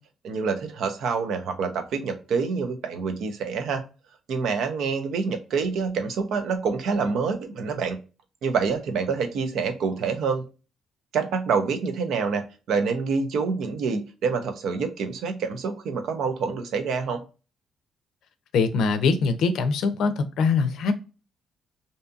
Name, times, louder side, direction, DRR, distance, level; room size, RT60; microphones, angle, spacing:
voice 1, 0.2-3.8 4.3-8.0 8.4-10.4 11.1-17.2, right 5 dB, 65° right, 0.5 m, -27 dB
voice 2, 18.5-20.9, left 4 dB, 70° left, 0.4 m, -22 dB
2.6 x 2.3 x 2.6 m
cardioid pair, 175°, 0 cm